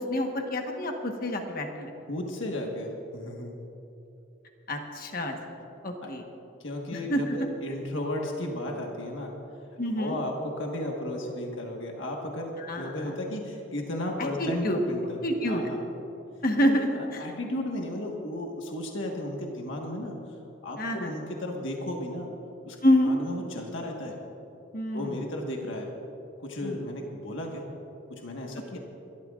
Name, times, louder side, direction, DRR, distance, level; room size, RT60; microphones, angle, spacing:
voice 1, 0.0-1.9 4.7-5.4 5.8-6.2 6.9-7.5 9.8-10.2 12.6-12.9 14.4-14.8 15.2-15.6 16.4-17.2 20.8-21.1 22.8-23.1 24.7-25.2 26.6-26.8, equal, 45° left, 3 dB, 1.3 m, -27 dB
voice 2, 2.1-3.6 6.0-6.1 6.6-9.3 10.0-15.2 15.5-15.8 16.6-20.1 20.6-22.3 22.6-22.8 23.0-24.1 24.9-25.9 26.4-27.7 28.2-28.8, left 1 dB, 65° left, 0 dB, 1.5 m, -34 dB
27.5 x 13.0 x 2.5 m, 3.0 s
head